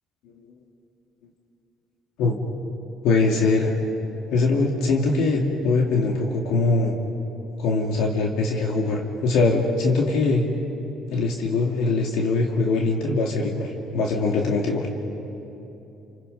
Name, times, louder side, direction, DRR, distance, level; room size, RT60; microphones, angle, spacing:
voice 1, 3.0-3.7 4.3-6.9 7.6-10.5 11.1-14.9, left 3 dB, 80° left, 0 dB, 2.6 m, -22 dB
30.0 x 29.0 x 5.5 m, 2.9 s
cardioid pair, 100°, 0 cm